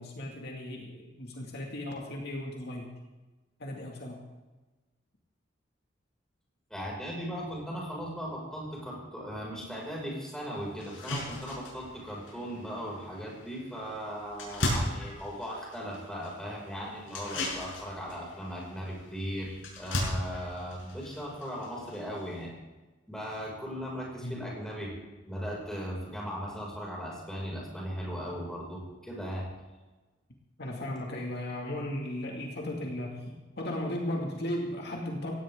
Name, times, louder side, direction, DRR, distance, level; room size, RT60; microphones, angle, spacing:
voice 1, 0.0-2.9 3.6-4.2 24.2-24.4 30.6-33.2 33.6-35.3, left 1 dB, 60° left, 0 dB, 2.3 m, -36 dB
voice 2, 6.7-22.5 23.1-24.9 25.2-29.4, equal, 5° left, -4 dB, 5.9 m, -38 dB
sound 1, 9.8-9.9 10.3-10.4 10.8-22.4, left 1 dB, 85° left, 6.8 m, -38 dB
17.5 x 17.0 x 3.8 m, 1.2 s
head